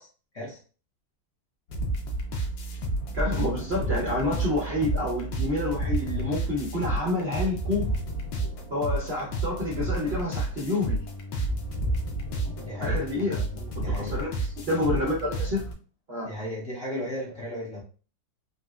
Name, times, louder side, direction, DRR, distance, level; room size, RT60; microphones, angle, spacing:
sound 1, 1.7-15.7, right 2 dB, 75° left, 1.3 m, -31 dB
Ocean, 2.7-13.5, right 1 dB, 30° left, 0.3 m, -37 dB
voice 1, 3.1-7.9 8.7-11.0 12.8-14.3 14.6-15.6 16.1-16.3, left 2 dB, 55° right, -5 dB, 0.7 m, -28 dB
voice 2, 12.6-13.0 13.8-14.1 16.2-17.8, equal, 50° left, -5 dB, 1.1 m, -34 dB
4.0 x 2.0 x 2.3 m, 0.38 s
omnidirectional pair, 2.0 m